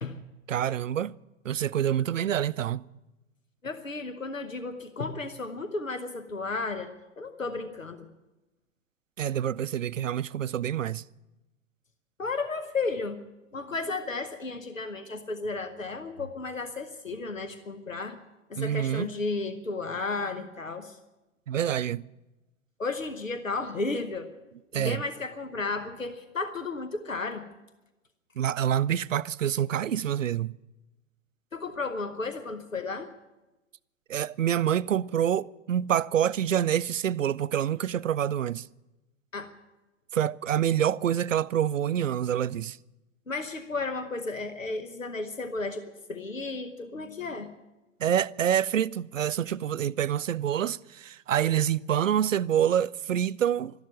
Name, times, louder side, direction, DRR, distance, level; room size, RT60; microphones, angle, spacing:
voice 1, 0.5-1.1 1.4-2.8 9.2-11.0 18.6-19.1 21.5-22.0 24.7-25.0 28.4-30.5 34.1-38.6 40.1-42.8 48.0-53.7, right 10 dB, 75° right, 0.5 m, -27 dB
voice 2, 3.6-8.1 12.2-13.2 13.5-18.2 18.5-21.0 22.8-24.3 24.7-27.5 31.5-33.1 39.3-39.5 43.3-45.8 46.1-47.5, left 3 dB, 85° left, 1.1 m, -33 dB
13.0 x 11.5 x 9.3 m
figure-of-eight pair, 105°, 38 cm